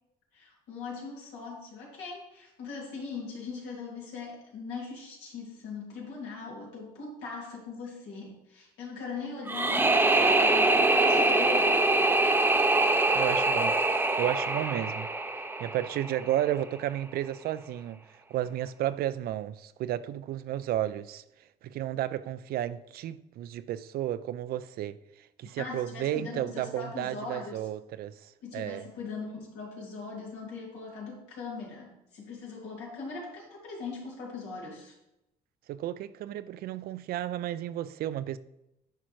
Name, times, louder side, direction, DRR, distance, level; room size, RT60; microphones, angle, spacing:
voice 1, 0.3-11.9 25.4-27.7 28.4-34.9, left 4 dB, 90° left, 2.6 m, -40 dB
sound 1, 9.5-16.4, right 2 dB, 10° right, 0.6 m, -24 dB
voice 2, 13.1-13.8 14.2-15.1 15.6-18.0 18.3-21.2 21.6-25.0 25.4-28.8 35.7-38.4, right 12 dB, 65° right, 0.4 m, -32 dB
10.0 x 4.8 x 3.1 m
cardioid pair, 110°, 17 cm